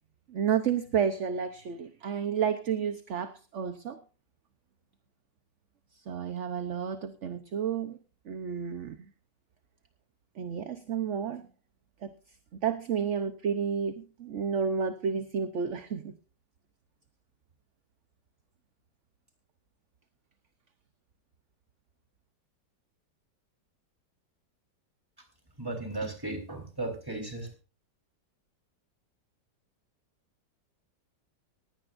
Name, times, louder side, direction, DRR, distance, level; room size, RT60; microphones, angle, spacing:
voice 1, 0.3-4.0 6.1-8.0 8.3-9.1 10.4-11.4 12.0-12.1 12.6-16.1, right 7 dB, 50° right, 10 dB, 1.0 m, -31 dB
voice 2, 25.6-27.5, right 2 dB, 10° right, 3 dB, 4.0 m, -35 dB
19.5 x 16.0 x 2.6 m, 0.33 s
omnidirectional pair, 2.0 m